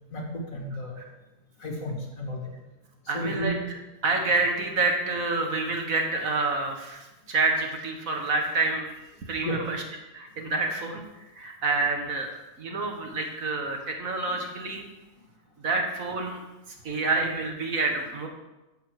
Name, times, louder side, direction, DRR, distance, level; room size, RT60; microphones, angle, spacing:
voice 1, 0.1-1.0 1.6-2.5 3.1-3.6 9.4-9.6, equal, 60° left, 0 dB, 2.4 m, -32 dB
voice 2, 3.1-3.8 4.0-8.9 9.2-9.8 10.1-12.3 12.6-14.9 15.6-16.4 16.8-18.3, right 3 dB, 60° right, 2 dB, 1.7 m, -28 dB
11.0 x 7.5 x 4.8 m, 1.0 s
omnidirectional pair, 1.7 m